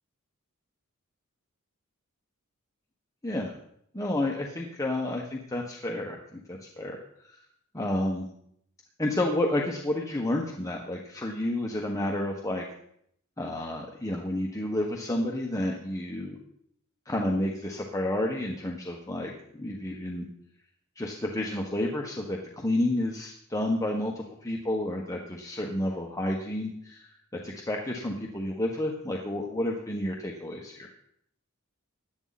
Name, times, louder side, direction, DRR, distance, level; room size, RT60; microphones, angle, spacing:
voice 1, 3.9-7.0 7.3-7.4 7.7-8.3 9.0-12.6 13.4-16.4 17.1-20.3 21.0-27.1 27.4-30.9, left 1 dB, 15° left, 0 dB, 1.4 m, -30 dB
17.0 x 12.0 x 4.2 m, 0.71 s
head